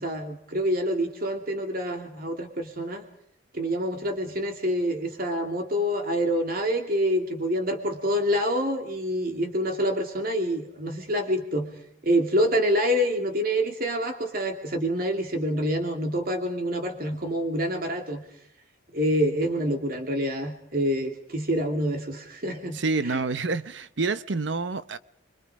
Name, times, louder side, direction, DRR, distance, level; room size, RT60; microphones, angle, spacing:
voice 1, 0.0-3.0 3.5-11.7 12.0-18.2 18.9-22.8 23.1-23.2, equal, 50° right, 2.7 m, -27 dB
voice 2, 22.7-25.0, right 3 dB, 70° right, 0.8 m, -28 dB
29.5 x 24.0 x 4.9 m
head